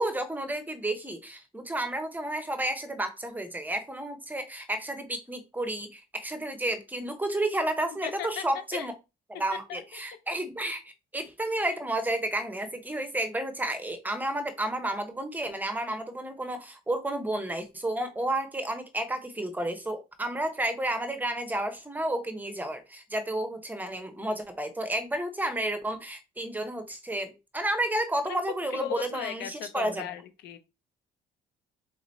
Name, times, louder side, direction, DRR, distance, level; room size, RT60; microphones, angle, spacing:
voice 1, 0.0-8.9 9.3-10.8 11.1-30.1, right 1 dB, 10° right, 1.0 m, -31 dB
voice 2, 8.0-8.4 8.7-8.9 9.7-9.8 11.6-11.7 28.2-28.4 28.7-30.6, left 10 dB, 75° left, 0.8 m, -37 dB
4.2 x 3.0 x 4.0 m
cardioid pair, 110°, 17 cm